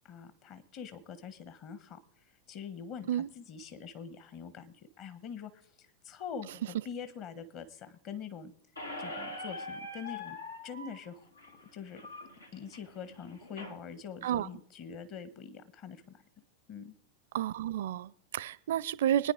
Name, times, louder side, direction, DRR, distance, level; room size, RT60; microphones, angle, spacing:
voice 1, 0.0-2.0 2.5-5.5 5.8-8.5 9.0-10.4 10.6-11.2 11.7-12.0 12.5-16.2 16.7-16.9, left 7 dB, 40° left, 11 dB, 1.6 m, -44 dB
Squeak, 8.8-13.8, left 2 dB, 80° left, 1.7 m, -43 dB
voice 2, 17.3-19.3, right 11 dB, 55° right, 21 dB, 0.5 m, -31 dB
22.0 x 10.0 x 5.1 m, 0.68 s
figure-of-eight pair, 90°, 0 cm